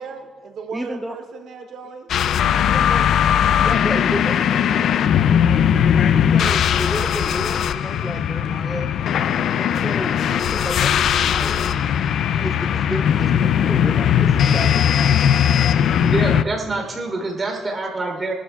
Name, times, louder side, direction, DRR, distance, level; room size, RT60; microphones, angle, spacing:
voice 1, 0.0-2.3 4.0-4.1 4.8-5.5 6.2-6.3 7.9-8.6 9.3-9.9 11.3-11.8 12.2-12.5 15.2-15.3 15.5-16.1 17.1-17.2, right 5 dB, 70° right, 4 dB, 0.9 m, -40 dB
voice 2, 0.7-1.2 2.6-3.1 3.5-5.5 6.1-8.9 9.6-11.9 12.3-15.2, equal, ahead, 4 dB, 0.6 m, -32 dB
sound 1, 2.1-16.4, left 9 dB, 70° left, 0.4 m, -19 dB
voice 3, 15.9-18.3, right 2 dB, 30° right, 1 dB, 3.4 m, -26 dB
22.5 x 12.5 x 2.4 m, 1.6 s
cardioid pair, 90°, 0 cm